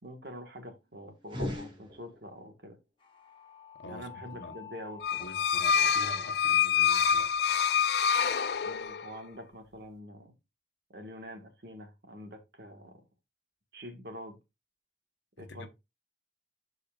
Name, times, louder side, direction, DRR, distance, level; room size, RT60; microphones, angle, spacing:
voice 1, 0.0-2.8 3.9-5.3 8.6-10.3 10.9-13.0 13.7-14.4 15.4-15.7, equal, 60° right, 1.7 m, -45 dB
sound 1, 1.2-2.5, left 1 dB, 25° right, 2.0 m, -38 dB
sound 2, 3.0-8.1, left 7 dB, 25° left, 1.5 m, -51 dB
voice 2, 3.8-4.6 5.2-7.4 15.4-15.7, left 2 dB, 85° left, 1.1 m, -46 dB
sound 3, 5.0-9.2, left 7 dB, 60° left, 0.4 m, -26 dB
12.0 x 4.2 x 2.4 m
head